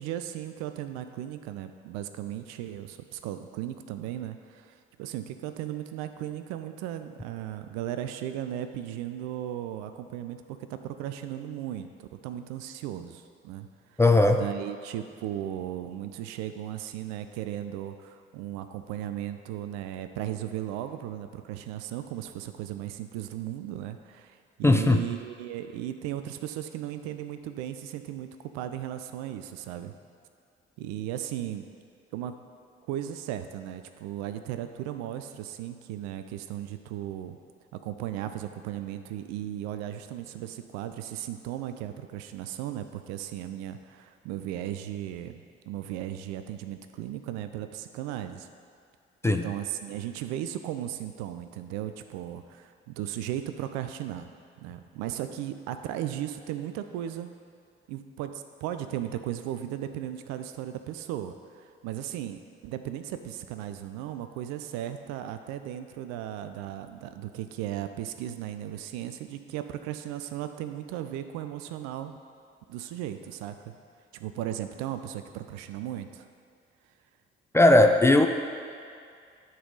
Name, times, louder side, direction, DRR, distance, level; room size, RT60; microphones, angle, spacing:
voice 1, 0.0-14.0 14.3-28.3 28.5-29.9 30.8-31.7 32.1-32.4 32.9-37.4 37.7-48.5 49.2-54.3 54.6-57.3 57.9-72.2 72.7-73.7 74.1-76.3, right 11 dB, 60° right, 9 dB, 0.5 m, -36 dB
voice 2, 14.0-14.4 24.6-25.0 49.2-49.4 77.5-78.3, left 2 dB, 10° left, 5 dB, 0.4 m, -18 dB
12.0 x 4.1 x 3.8 m, 2.3 s
figure-of-eight pair, 40°, 31 cm